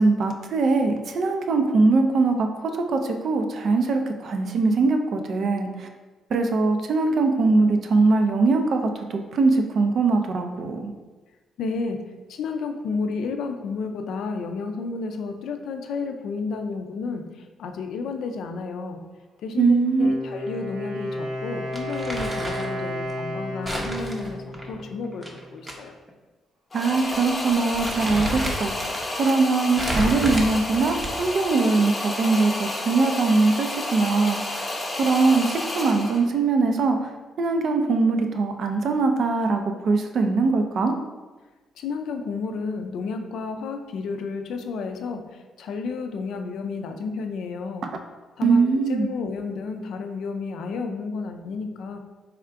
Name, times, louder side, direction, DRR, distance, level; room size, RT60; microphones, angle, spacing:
voice 1, 0.0-2.5 2.8-5.9 6.3-8.8 9.1-10.9 19.6-20.1 26.7-28.7 29.2-34.6 35.0-37.0 37.4-40.9 48.4-49.1, right 3 dB, 60° right, 5 dB, 0.5 m, -21 dB
voice 2, 11.6-19.0 19.4-25.3 25.5-26.0 41.8-47.9 48.4-52.0, left 4 dB, 75° left, 6 dB, 0.4 m, -31 dB
Wind instrument woodwind instrument, 19.8-25.6, equal, 80° right, 1.2 m, -33 dB
Crumpling crinkling, 21.7-22.8 23.7-25.7 26.1-26.2 27.0-27.2 27.5-29.1 29.8-31.4, right 1 dB, 20° right, 0.7 m, -31 dB
sound 1, 26.7-36.3, left 1 dB, 25° left, 0.8 m, -31 dB
3.5 x 2.4 x 4.5 m, 1.3 s
cardioid pair, 90°, 0 cm